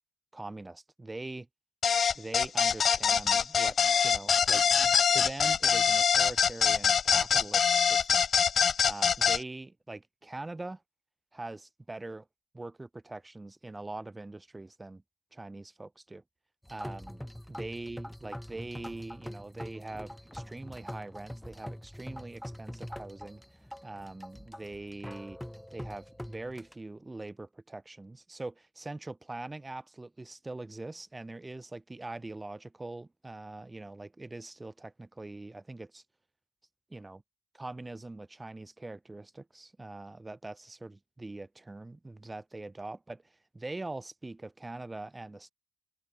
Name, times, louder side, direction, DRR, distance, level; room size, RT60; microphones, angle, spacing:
voice 1, 0.3-1.5 2.1-3.8 4.0-8.2 8.8-10.8 11.3-12.3 12.5-15.0 15.3-16.2 16.7-17.2 17.5-25.4 25.7-36.0 36.9-37.2 37.5-45.5, right 2 dB, 15° right, 2.3 m, -43 dB
sound 1, 1.8-9.4, left 7 dB, 50° left, 0.3 m, -24 dB
sound 2, 16.6-26.7, equal, 5° left, 1.1 m, -44 dB
cardioid pair, 90°, 0 cm